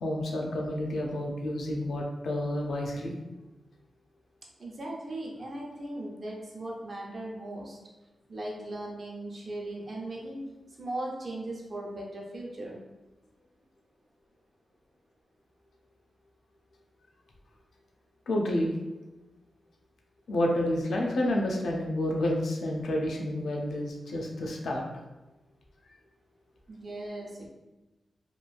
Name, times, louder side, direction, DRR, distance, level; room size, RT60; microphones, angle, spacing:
voice 1, 0.0-3.1 18.3-18.7 20.3-24.8, left 1 dB, 85° left, 0 dB, 0.5 m, -29 dB
voice 2, 4.6-7.8 8.3-10.4 10.8-12.8 26.7-27.5, right 1 dB, 45° right, -2 dB, 0.6 m, -38 dB
3.0 x 2.5 x 2.3 m, 1.1 s
wide cardioid pair, 100°, 0 cm